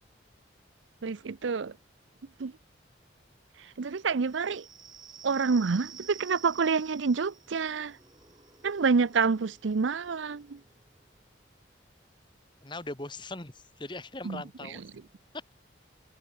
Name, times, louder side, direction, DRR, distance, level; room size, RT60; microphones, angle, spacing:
voice 1, 1.0-1.7 2.4-2.5 3.8-4.6 5.2-8.0 8.6-10.6 14.2-14.4 14.7-14.8, right 5 dB, 85° right, 0.6 m, -28 dB
sound 1, 4.2-11.5, right 7 dB, 25° right, 1.9 m, -52 dB
voice 2, 12.6-14.8, left 2 dB, 25° left, 1.9 m, -40 dB
head